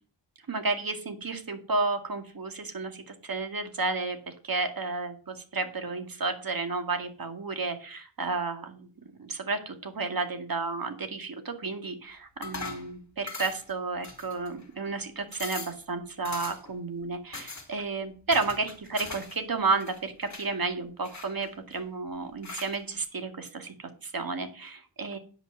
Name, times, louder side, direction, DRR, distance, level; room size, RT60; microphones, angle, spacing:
voice 1, 0.5-4.2 4.4-8.9 9.2-25.2, right 3 dB, 45° right, 6 dB, 2.2 m, -32 dB
sound 1, 12.4-12.9 13.3-13.7 14.0-14.6 15.0-15.1 15.3-15.8 16.2-16.7 17.3-17.7 18.3-19.4 19.6-20.5 21.0-21.8 22.4-22.8, left 3 dB, 35° left, 2.6 m, -40 dB
10.0 x 5.5 x 7.4 m, 0.39 s
wide cardioid pair, 115°, 49 cm